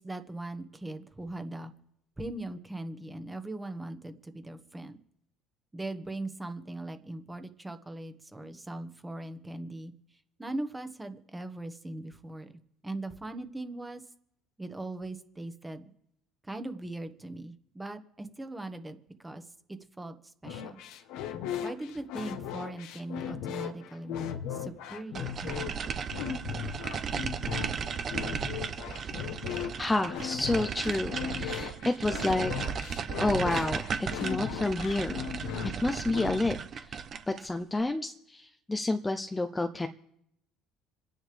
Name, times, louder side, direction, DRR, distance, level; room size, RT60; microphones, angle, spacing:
voice 1, 0.0-1.7 2.2-5.0 5.7-9.9 10.4-14.0 14.6-15.9 16.4-20.8 21.6-25.7, right 2 dB, 15° right, 8 dB, 1.4 m, -40 dB
sound 1, 20.4-36.6, left 8 dB, 75° left, 1.2 m, -37 dB
sound 2, 25.1-37.5, right 6 dB, 45° right, 0.9 m, -35 dB
voice 2, 29.8-32.5 33.2-35.2 35.8-36.9 37.3-39.9, left 2 dB, 15° left, 6 dB, 0.7 m, -30 dB
26.5 x 10.0 x 3.5 m, 0.78 s
supercardioid pair, 90°, 0 cm